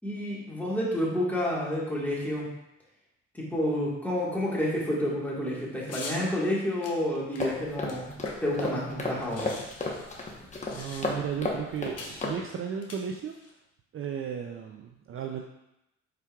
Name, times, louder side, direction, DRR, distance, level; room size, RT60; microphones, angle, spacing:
voice 1, 0.0-2.5 3.3-8.1 8.4-9.6, left 1 dB, 5° left, -5 dB, 1.5 m, -29 dB
sound 1, 5.9-6.2 6.8-8.6 8.9-9.0 9.2-11.3 12.0-12.2 12.8-13.5, left 3 dB, 55° left, 0.9 m, -43 dB
sound 2, 7.4-12.4, left 2 dB, 25° left, 0.9 m, -34 dB
voice 2, 10.6-13.3 13.9-15.4, right 7 dB, 45° right, 3 dB, 0.4 m, -35 dB
5.0 x 4.5 x 2.3 m, 0.88 s
cardioid pair, 90°, 30 cm